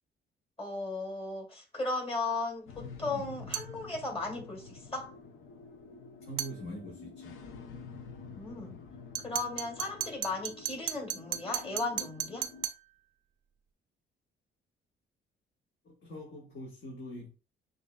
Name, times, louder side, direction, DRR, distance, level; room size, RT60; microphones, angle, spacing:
voice 1, 0.6-5.1 8.3-8.8 9.2-12.5, left 3 dB, 30° left, 2.0 m, -36 dB
sound 1, 2.7-12.7, left 5 dB, 80° left, 0.6 m, -48 dB
sound 2, 3.5-3.8 6.4-6.6 9.1-12.9, right 12 dB, 80° right, 0.5 m, -36 dB
voice 2, 6.2-7.4 15.8-17.3, equal, 60° left, 1.5 m, -43 dB
6.7 x 2.7 x 2.2 m
cardioid pair, 90°, 20 cm